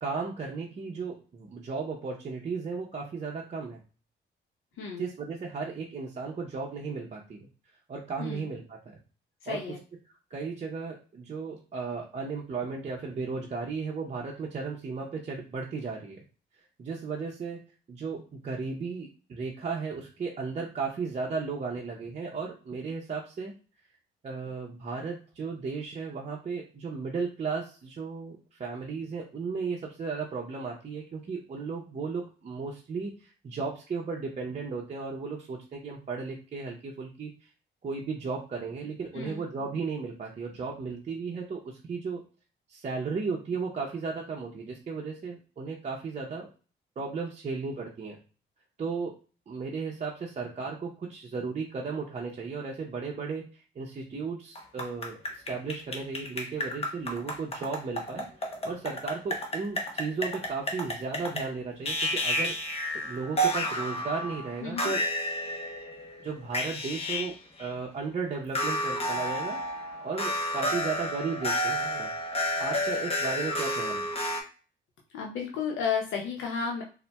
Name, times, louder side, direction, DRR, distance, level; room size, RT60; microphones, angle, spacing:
voice 1, 0.0-3.8 5.0-7.5 7.9-9.0 9.5-9.6 10.3-16.2 16.8-17.6 17.9-23.5 24.2-37.3 37.8-42.2 42.7-46.5 47.0-48.2 48.8-49.1 49.5-58.3 58.6-62.6 62.9-65.0 66.2-67.3 67.6-72.1 72.6-74.1, right 4 dB, 35° right, -3 dB, 0.6 m, -35 dB
voice 2, 9.4-9.8 39.1-39.4 64.6-64.9 75.1-76.8, left 6 dB, 80° left, 0 dB, 0.6 m, -32 dB
sound 1, 54.5-61.5 61.8-67.3 67.6-67.7 68.5-74.4, equal, 30° left, 0.8 m, -31 dB
3.9 x 2.1 x 2.2 m, 0.37 s
cardioid pair, 90°, 20 cm